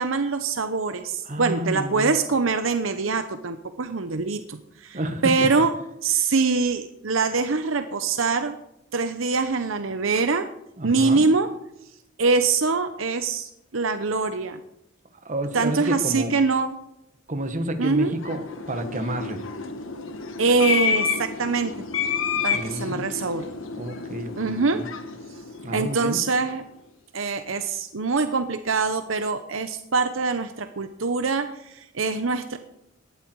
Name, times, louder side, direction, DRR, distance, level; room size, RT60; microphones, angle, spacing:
voice 1, 0.0-5.7 6.0-8.5 8.9-10.5 10.8-11.5 12.2-14.6 15.5-16.8 17.8-18.1 20.4-21.8 22.4-23.5 24.4-24.8 25.7-26.6 27.1-32.6, right 4 dB, 70° right, 9 dB, 0.9 m, -24 dB
voice 2, 1.2-2.1 4.9-5.3 10.8-11.3 15.2-16.3 17.3-18.4 18.7-19.4 22.5-23.1 23.8-24.9 25.6-26.2, right 1 dB, 40° right, 7 dB, 1.7 m, -30 dB
sound 1, 17.9-26.4, left 6 dB, 70° left, 1.5 m, -30 dB
17.5 x 12.0 x 4.7 m, 0.82 s
head